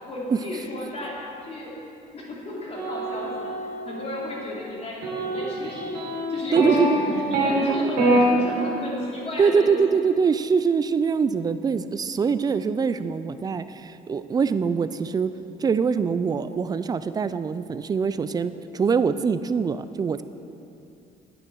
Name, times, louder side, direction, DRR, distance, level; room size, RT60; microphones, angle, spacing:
voice 1, 0.1-1.1 1.4-1.7 2.1-3.5 3.8-6.0 6.3-6.9 7.3-9.8, left 1 dB, 40° left, -4 dB, 2.7 m, -33 dB
sound 1, 2.7-4.3 5.0-7.5 8.0-8.2, right 2 dB, 85° right, 2.5 m, -26 dB
voice 2, 6.5-8.2 9.4-15.3 15.6-20.2, right 5 dB, 25° right, 13 dB, 0.4 m, -24 dB
9.8 x 8.7 x 4.6 m, 2.7 s
cardioid pair, 110°, 17 cm